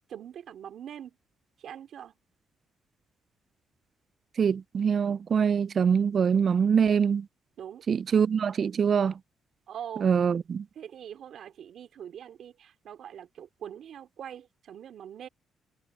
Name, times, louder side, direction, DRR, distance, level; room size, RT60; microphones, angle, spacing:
voice 1, 0.1-1.2 1.6-2.1 7.6-7.8 9.7-10.1 10.7-15.3, right 9 dB, 65° right, 3.2 m, -43 dB
voice 2, 4.4-7.3 7.9-9.1 10.0-10.6, right 7 dB, 50° right, 0.3 m, -24 dB
cardioid pair, 90°, 0 cm